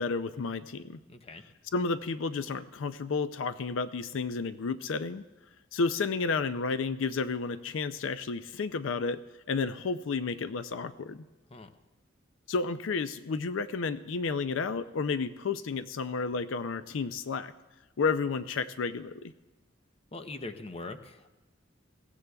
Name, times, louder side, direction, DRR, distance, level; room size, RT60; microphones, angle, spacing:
voice 1, 0.0-1.0 1.7-5.2 5.7-9.2 9.5-11.2 12.5-17.5 18.0-19.3, left 4 dB, 75° left, 12 dB, 0.4 m, -31 dB
voice 2, 1.1-1.4 11.5-11.7 20.1-21.3, left 2 dB, 30° left, 8 dB, 0.7 m, -42 dB
21.5 x 17.0 x 2.3 m, 1.1 s
head